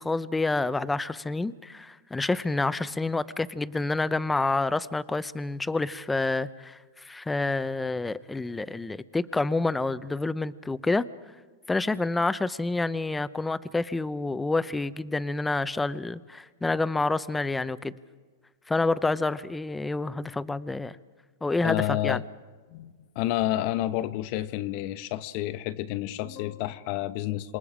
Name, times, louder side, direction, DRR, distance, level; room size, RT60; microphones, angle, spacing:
voice 1, 0.0-11.0 11.7-17.9 18.7-21.0 21.4-22.2, left 3 dB, 10° left, 15 dB, 0.7 m, -28 dB
voice 2, 21.5-22.2 22.7-27.6, left 14 dB, 50° left, 13 dB, 1.0 m, -30 dB
27.5 x 23.0 x 5.0 m, 1.4 s
hypercardioid pair, 130°, 0 cm